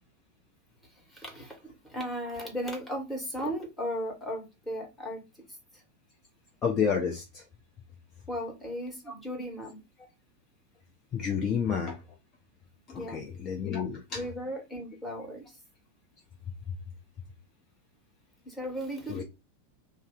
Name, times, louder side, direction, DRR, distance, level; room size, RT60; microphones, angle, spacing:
voice 1, 1.0-5.2 5.7-5.8 8.3-9.8 12.9-13.3 14.1-15.5 18.4-19.2, equal, 5° left, 1.3 m, -36 dB
voice 2, 6.6-7.2 11.1-11.9 12.9-14.0 19.1-19.2, left 7 dB, 30° left, 0.6 m, -29 dB
2.5 x 2.0 x 3.7 m
figure-of-eight pair, 90°, 0 cm